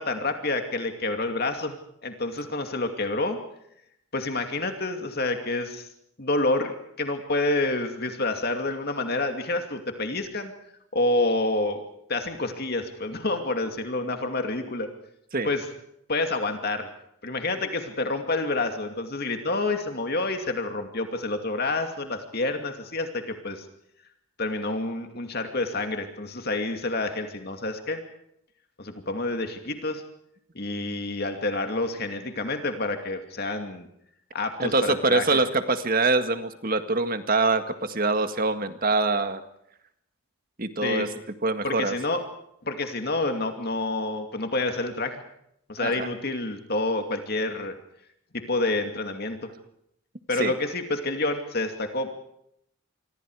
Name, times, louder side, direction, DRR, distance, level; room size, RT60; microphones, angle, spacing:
voice 1, 0.0-3.4 4.1-5.9 6.2-10.5 10.9-11.8 12.1-14.9 15.4-15.7 16.1-16.9 17.2-23.7 24.4-28.0 28.8-30.0 30.5-33.9 34.3-35.4 40.8-41.1 41.6-42.2 42.6-45.2 45.7-47.8 48.3-49.4 50.3-52.1, left 2 dB, 45° left, 5 dB, 2.6 m, -28 dB
voice 2, 34.6-39.4 40.6-41.1 41.4-42.0 45.8-46.1 50.4-50.5, right 3 dB, 40° right, 9 dB, 1.9 m, -24 dB
27.5 x 24.0 x 4.9 m, 0.75 s
head